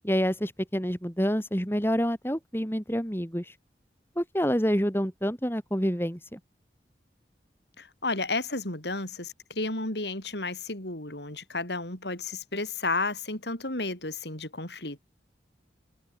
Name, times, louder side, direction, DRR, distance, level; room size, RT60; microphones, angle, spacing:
voice 1, 0.0-3.5 4.2-6.4, equal, 15° left, 5.5 m, -27 dB
voice 2, 7.8-15.0, left 3 dB, 75° left, 6.6 m, -32 dB
open air
head